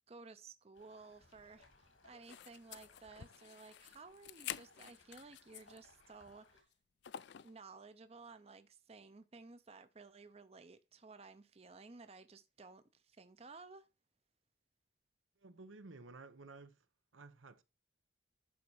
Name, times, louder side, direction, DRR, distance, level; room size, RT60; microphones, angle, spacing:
voice 1, 0.1-6.7 7.4-13.9, right 4 dB, 30° right, 0.6 m, -56 dB
sound 1, 0.7-6.6, left 3 dB, 85° left, 2.3 m, -66 dB
sound 2, 2.2-5.9 6.3-6.4 7.0-7.6, left 11 dB, 60° left, 0.4 m, -49 dB
voice 2, 15.4-16.9 17.1-17.6, right 3 dB, 85° right, 0.9 m, -54 dB
11.0 x 4.1 x 4.8 m
head